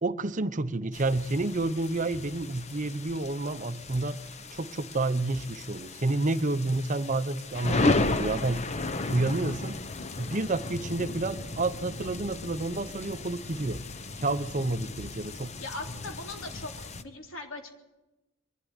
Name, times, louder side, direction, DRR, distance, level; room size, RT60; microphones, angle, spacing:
voice 1, 0.0-4.2 4.5-8.7 9.1-9.8 10.2-13.9 14.2-15.5, right 2 dB, 40° right, 0.8 m, -29 dB
sound 1, 0.9-17.0, left 2 dB, 35° left, 0.9 m, -34 dB
voice 2, 10.0-10.3 15.6-17.7, left 2 dB, 85° left, 3.6 m, -40 dB
23.0 x 12.5 x 9.8 m
head